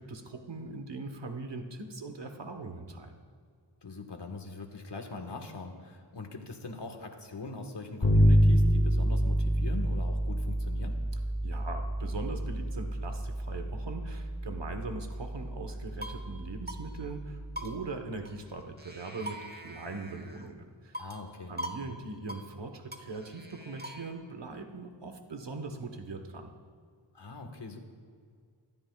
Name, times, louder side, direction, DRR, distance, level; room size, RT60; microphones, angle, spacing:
voice 1, 0.0-3.2 11.4-21.0 21.5-26.5, right 3 dB, 65° right, 5 dB, 1.3 m, -41 dB
voice 2, 3.8-11.0 21.0-21.5 27.1-27.8, left 3 dB, 65° left, 3 dB, 1.6 m, -42 dB
Bass guitar, 8.0-17.7, equal, 45° left, 2.3 m, -28 dB
sound 1, 15.7-16.3 16.7-16.8 17.1-17.2 17.6-18.5 18.8-20.5 20.9-21.3 21.6-21.8 22.1-22.5 22.9-24.1, right 1 dB, 20° right, 1.0 m, -42 dB
24.0 x 12.5 x 2.4 m, 2.1 s
wide cardioid pair, 85°, 45 cm